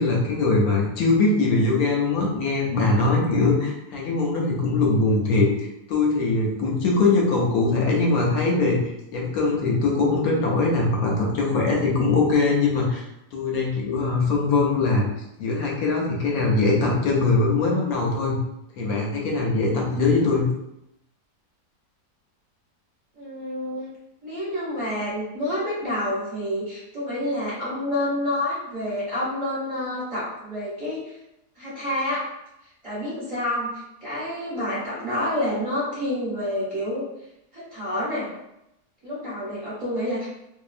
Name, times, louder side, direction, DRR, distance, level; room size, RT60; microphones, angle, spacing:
voice 1, 0.0-8.8 9.1-13.0 13.3-15.0 15.4-18.4 18.8-20.5, left 3 dB, 70° left, -2 dB, 1.0 m, -22 dB
voice 2, 23.2-23.9 24.2-31.2 31.6-32.2 32.8-33.7 34.0-37.0 37.5-38.3 39.0-40.3, left 1 dB, 25° right, -10 dB, 1.1 m, -28 dB
2.7 x 2.3 x 2.4 m, 0.84 s
omnidirectional pair, 1.7 m